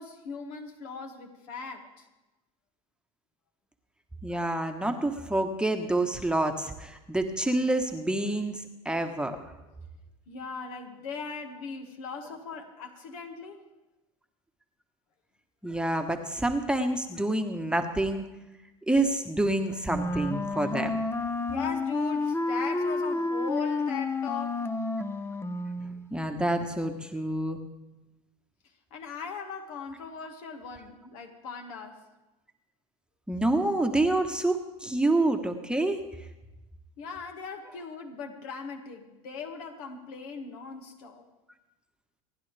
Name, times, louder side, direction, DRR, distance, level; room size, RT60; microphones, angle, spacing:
voice 1, 0.0-2.1 10.3-13.6 21.5-24.7 28.9-32.0 37.0-41.3, left 5 dB, 70° left, 4 dB, 2.1 m, -39 dB
voice 2, 4.2-9.4 15.6-18.2 18.9-21.0 26.1-27.6 33.3-36.0, right 2 dB, 5° right, 4 dB, 1.3 m, -27 dB
Wind instrument woodwind instrument, 19.8-26.1, left 3 dB, 15° left, 0.8 m, -30 dB
28.0 x 10.5 x 3.4 m, 1.0 s
hypercardioid pair, 95°, 19 cm